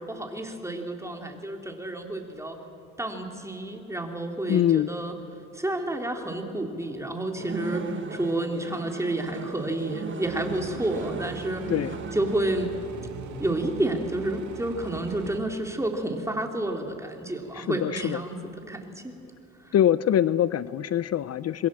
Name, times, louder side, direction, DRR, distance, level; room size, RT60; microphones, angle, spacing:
voice 1, 0.0-2.6 3.0-5.1 5.5-11.7 12.1-12.7 13.4-19.1 19.6-19.7, right 1 dB, 10° right, 2 dB, 3.3 m, -30 dB
voice 2, 4.5-4.9 11.7-12.0 17.5-18.2 19.7-21.7, left 11 dB, 55° left, 16 dB, 0.6 m, -24 dB
sound 1, 7.4-12.4, right 5 dB, 40° right, 1.5 m, -36 dB
sound 2, 10.2-15.4, right 6 dB, 70° right, 2.0 m, -42 dB
26.5 x 21.5 x 7.7 m, 2.8 s
cardioid pair, 90°, 30 cm